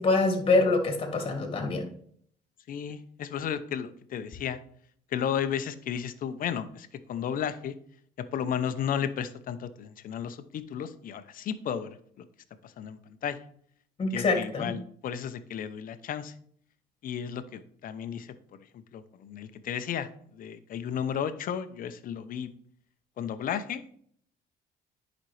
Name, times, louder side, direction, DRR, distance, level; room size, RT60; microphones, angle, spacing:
voice 1, 0.0-1.9 14.0-14.7, left 3 dB, 35° left, 4 dB, 1.9 m, -25 dB
voice 2, 2.7-4.6 5.1-7.8 8.3-12.2 12.6-13.4 14.1-16.3 17.0-18.3 18.9-20.1 20.3-22.5 23.2-23.9, left 8 dB, 55° left, 11 dB, 0.8 m, -33 dB
10.0 x 5.2 x 3.3 m, 0.63 s
cardioid pair, 110°, 17 cm